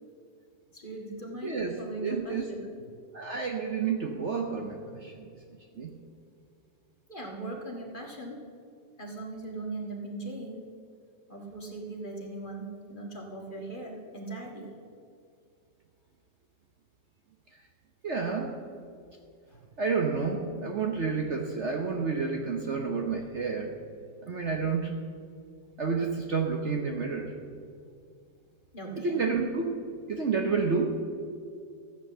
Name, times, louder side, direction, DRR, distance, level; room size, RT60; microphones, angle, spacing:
voice 1, 0.7-2.7 4.9-5.1 7.1-8.5 9.0-10.7 11.3-14.7 19.5-19.6 28.7-29.2, right 2 dB, 30° left, 0 dB, 1.8 m, -39 dB
voice 2, 1.4-2.4 3.1-5.3 5.8-5.9 18.0-18.6 19.8-23.7 24.2-24.9 25.8-27.3 29.0-29.7 30.1-31.0, right 5 dB, 50° right, 2 dB, 1.1 m, -30 dB
14.0 x 8.1 x 6.8 m, 2.4 s
omnidirectional pair, 1.8 m